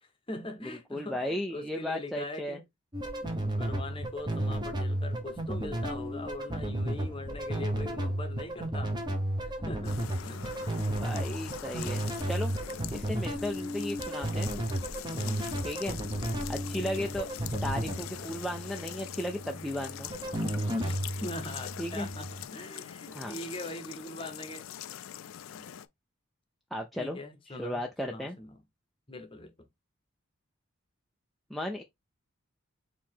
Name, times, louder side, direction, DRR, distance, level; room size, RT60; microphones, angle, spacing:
voice 1, 0.0-2.6 3.2-9.0 9.4-10.8 15.1-15.5 16.7-17.2 20.8-24.7 25.5-25.7 27.0-28.6 29.1-29.5, left 2 dB, 25° left, 0.9 m, -42 dB
voice 2, 0.9-2.6 10.9-12.5 12.9-14.5 15.6-16.0 16.5-17.3 17.6-20.1 21.8-22.1 23.1-23.3 26.7-27.2 27.5-28.4 31.5-31.8, left 1 dB, ahead, 0.4 m, -35 dB
sound 1, 2.9-22.4, right 1 dB, 20° right, 0.8 m, -33 dB
sound 2, 9.8-25.9, left 10 dB, 65° left, 0.4 m, -43 dB
4.8 x 2.8 x 3.6 m
head